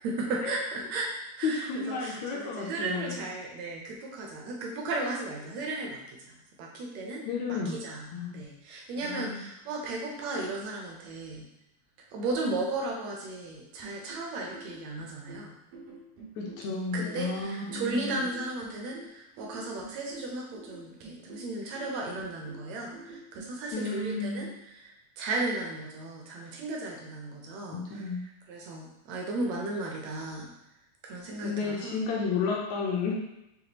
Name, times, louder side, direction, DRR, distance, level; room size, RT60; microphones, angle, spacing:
voice 1, 0.0-1.1 1.4-7.2 7.5-11.5 12.1-15.6 16.9-28.1 28.5-30.5 31.0-32.0, right 2 dB, 75° right, -1 dB, 1.7 m, -35 dB
voice 2, 1.4-3.2 7.3-7.8 8.1-8.4 9.0-9.5 16.4-18.2 23.7-24.5 27.7-28.2 31.4-33.1, left 4 dB, 75° left, -2 dB, 1.8 m, -32 dB
sound 1, 13.8-23.7, right 3 dB, 90° right, 2.8 m, -48 dB
6.6 x 2.3 x 2.9 m, 0.88 s
omnidirectional pair, 3.5 m